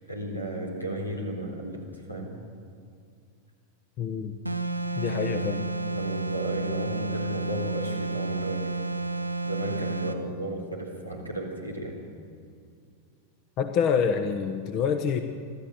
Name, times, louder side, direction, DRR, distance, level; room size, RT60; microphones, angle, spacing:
voice 1, 0.1-2.3 5.1-5.6 5.9-8.6 9.4-11.9, right 1 dB, 90° left, 2 dB, 3.9 m, -34 dB
voice 2, 4.0-4.3 5.0-5.6 13.6-15.2, left 7 dB, 40° left, 8 dB, 1.2 m, -26 dB
sound 1, 4.4-10.2, right 3 dB, 90° right, 0.9 m, -31 dB
26.0 x 12.5 x 8.1 m, 2.3 s
figure-of-eight pair, 90°, 0 cm